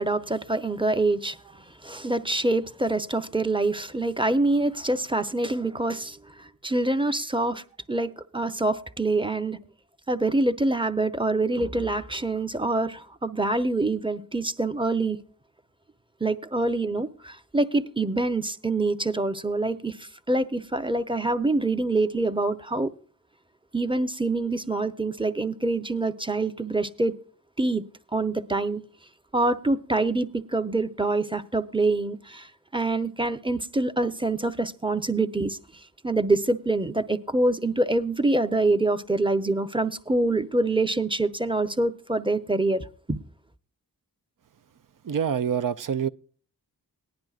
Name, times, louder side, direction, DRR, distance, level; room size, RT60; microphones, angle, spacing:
voice 1, 0.0-7.6 7.9-9.6 10.1-15.2 16.2-22.9 23.7-27.2 27.6-27.8 28.1-28.8 29.3-35.6 36.0-43.2, right 2 dB, 15° right, 0.7 m, -25 dB
voice 2, 45.0-46.1, right 8 dB, 60° right, 0.6 m, -26 dB
18.5 x 10.5 x 2.4 m
cardioid pair, 55°, 38 cm